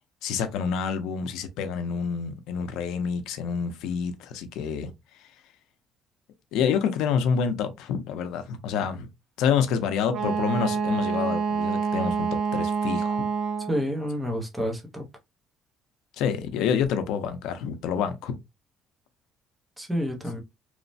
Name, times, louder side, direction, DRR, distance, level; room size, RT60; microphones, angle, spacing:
voice 1, 0.2-4.9 6.5-9.1 9.4-13.3 16.2-18.4, left 7 dB, 75° left, 0.5 m, -27 dB
Wind instrument woodwind instrument, 10.1-13.8, right 5 dB, 50° right, 0.4 m, -27 dB
voice 2, 13.7-15.0 19.8-20.4, equal, 5° right, 0.6 m, -29 dB
3.1 x 2.0 x 2.5 m
cardioid pair, 165°, 0 cm